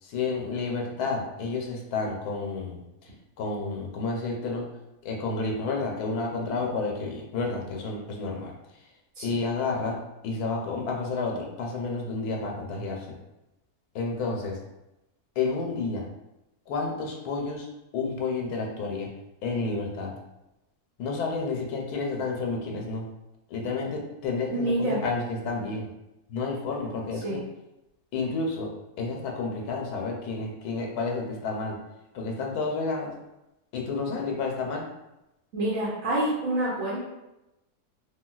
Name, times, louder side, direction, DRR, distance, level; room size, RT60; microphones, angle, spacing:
voice 1, 0.0-3.1 3.4-4.6 5.0-8.5 9.2-10.0 10.2-13.1 13.9-14.6 15.4-16.0 16.7-17.7 17.9-19.1 19.4-20.1 21.0-23.1 23.5-25.9 26.3-27.4 28.1-28.7 29.0-31.8 32.1-33.1 33.7-34.9, left 3 dB, 90° left, 0 dB, 1.1 m, -30 dB
voice 2, 24.5-25.0 27.2-27.4 35.5-37.0, right 1 dB, 65° right, -9 dB, 1.2 m, -27 dB
3.7 x 2.2 x 2.2 m, 0.94 s
omnidirectional pair, 1.6 m